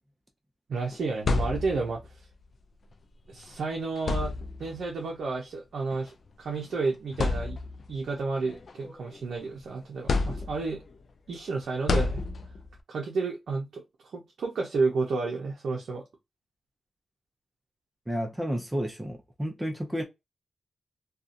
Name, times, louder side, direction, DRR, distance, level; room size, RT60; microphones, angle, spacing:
voice 1, 0.7-2.0 3.3-4.3 4.6-7.6 7.9-10.8 11.3-12.2 12.9-16.0, right 4 dB, 80° right, 0.6 m, -31 dB
sound 1, 0.9-2.1 3.3-3.5 4.0-4.8 5.9-6.1 6.6-6.7 7.1-7.9 8.4-9.5 10.1-10.9 11.9-12.8, left 3 dB, 55° left, 0.4 m, -29 dB
voice 2, 18.1-20.0, equal, 15° right, 0.7 m, -31 dB
2.7 x 2.4 x 2.4 m
wide cardioid pair, 95°, 0 cm